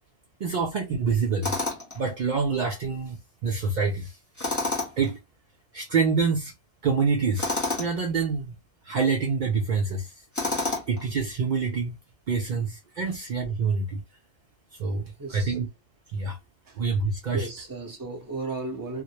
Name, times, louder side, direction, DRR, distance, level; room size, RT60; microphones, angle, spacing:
voice 1, 0.4-1.5 1.9-4.2 5.0-5.2 5.7-6.5 6.8-7.5 7.8-8.6 8.8-10.1 10.9-12.0 12.3-14.0 14.7-15.7 16.1-16.4 16.8-17.5, right 5 dB, 70° right, 0.4 m, -26 dB
Tools, 1.4-2.0 4.4-5.1 7.4-7.9 10.3-11.0, left 3 dB, 15° left, 0.8 m, -28 dB
voice 2, 15.2-15.6 16.6-16.8 17.3-19.0, right 3 dB, 20° right, 0.6 m, -35 dB
2.2 x 2.0 x 2.8 m
omnidirectional pair, 1.3 m